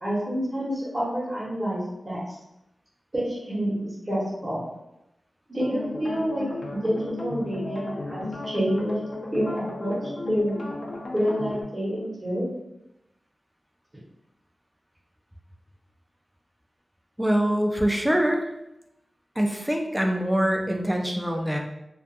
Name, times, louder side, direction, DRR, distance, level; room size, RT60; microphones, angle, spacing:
voice 1, 0.0-2.2 3.1-4.6 5.5-8.9 9.3-10.6 11.1-12.5, equal, 25° right, -11 dB, 0.8 m, -28 dB
sound 1, 5.6-11.6, left 2 dB, 60° left, 0.4 m, -35 dB
voice 2, 17.2-18.4 19.4-21.6, equal, 5° right, 2 dB, 0.3 m, -24 dB
2.3 x 2.2 x 2.6 m, 0.88 s
wide cardioid pair, 105°, 0 cm